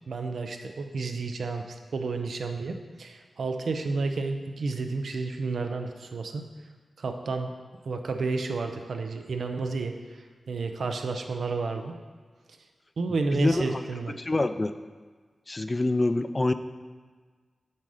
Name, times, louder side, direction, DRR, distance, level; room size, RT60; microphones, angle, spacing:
voice 1, 0.1-1.6 1.9-6.4 7.0-7.5 7.8-9.9 10.5-11.9 13.0-14.1, right 3 dB, 80° right, 5 dB, 0.6 m, -31 dB
voice 2, 13.3-13.8 14.2-14.7 15.5-16.5, left 2 dB, 30° left, 10 dB, 0.4 m, -26 dB
7.4 x 4.2 x 4.9 m, 1.5 s
cardioid pair, 65°, 0 cm